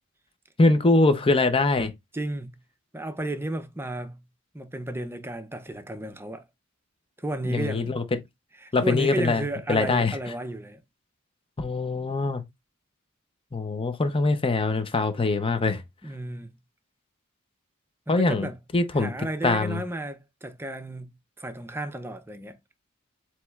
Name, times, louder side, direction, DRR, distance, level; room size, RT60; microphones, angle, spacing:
voice 1, 0.6-1.9 7.4-8.0 8.7-9.4 9.7-10.2 11.6-12.4 13.5-15.8 18.1-18.5 18.7-19.1 19.4-19.8, left 3 dB, 25° left, 0.7 m, -23 dB
voice 2, 2.1-2.6 2.9-4.2 4.5-6.5 7.2-8.0 8.6-10.8 16.0-16.6 18.1-18.6 19.0-21.1 21.4-22.6, right 1 dB, 10° right, 0.6 m, -33 dB
7.5 x 3.0 x 2.3 m
head